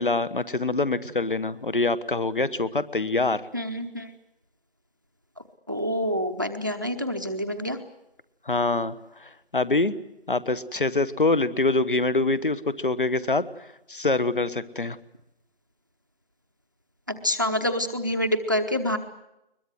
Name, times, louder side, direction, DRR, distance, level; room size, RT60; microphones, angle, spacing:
voice 1, 0.0-3.4 8.5-9.9 10.3-13.4 13.9-15.0, left 3 dB, 55° left, 17 dB, 1.4 m, -25 dB
voice 2, 3.5-4.1 5.7-7.8 17.2-19.0, equal, 20° right, 8 dB, 0.9 m, -27 dB
22.0 x 21.5 x 7.8 m, 0.86 s
figure-of-eight pair, 175°, 31 cm